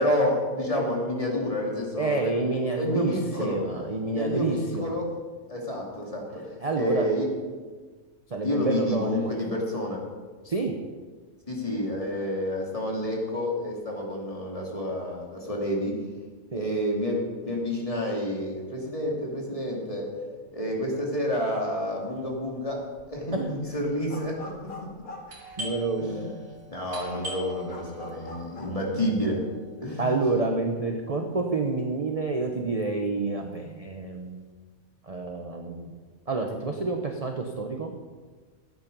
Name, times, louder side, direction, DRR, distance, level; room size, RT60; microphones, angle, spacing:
voice 1, 0.0-3.6 4.1-5.1 5.5-6.4 6.8-7.3 8.4-10.0 11.5-16.0 16.5-20.2 20.5-24.5 26.1-26.3 26.7-29.4 29.8-30.2, left 1 dB, 25° left, -2 dB, 2.5 m, -29 dB
voice 2, 2.0-3.1 3.4-5.0 6.6-7.1 8.3-9.3 10.4-10.8 16.5-16.7 23.3-23.5 25.6-26.4 30.0-34.4 35.1-35.9 36.3-37.9, right 3 dB, 30° right, 2 dB, 0.9 m, -28 dB
sound 1, 22.2-22.6 22.9-26.1 26.6-26.7 26.9-28.8, left 2 dB, 85° left, 2.1 m, -43 dB
Doorbell, 25.3-30.7, equal, 50° right, 3.5 m, -42 dB
15.0 x 8.8 x 5.3 m, 1.4 s
omnidirectional pair, 1.5 m